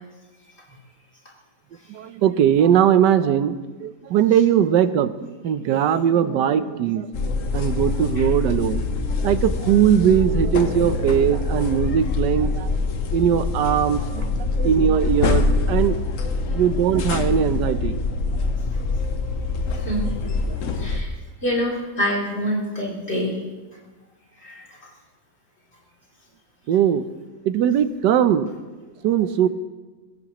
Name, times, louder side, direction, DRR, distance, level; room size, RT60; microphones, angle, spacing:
voice 1, 1.9-3.6 3.8-7.1 7.5-8.9 9.2-12.7 13.1-16.0 16.5-18.0 26.7-27.1 27.5-28.5 29.0-29.5, right 9 dB, 80° right, 12 dB, 1.3 m, -20 dB
sound 1, 7.1-21.0, left 3 dB, 55° left, 1.2 m, -24 dB
voice 2, 19.7-20.0 20.7-23.4 24.4-24.8, equal, 35° left, -4 dB, 3.5 m, -26 dB
21.0 x 16.5 x 3.0 m, 1.3 s
omnidirectional pair, 1.8 m